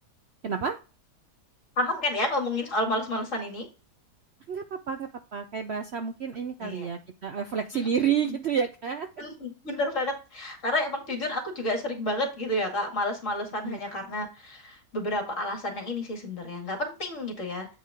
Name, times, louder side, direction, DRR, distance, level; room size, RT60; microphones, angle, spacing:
voice 1, 0.4-0.8 4.5-9.1 13.6-13.8, right 7 dB, 60° right, 6 dB, 0.7 m, -30 dB
voice 2, 1.8-3.7 6.6-6.9 7.7-7.9 8.2-8.4 9.2-17.7, left 1 dB, 50° left, 2 dB, 2.3 m, -30 dB
8.2 x 4.7 x 3.5 m, 0.32 s
omnidirectional pair, 1.7 m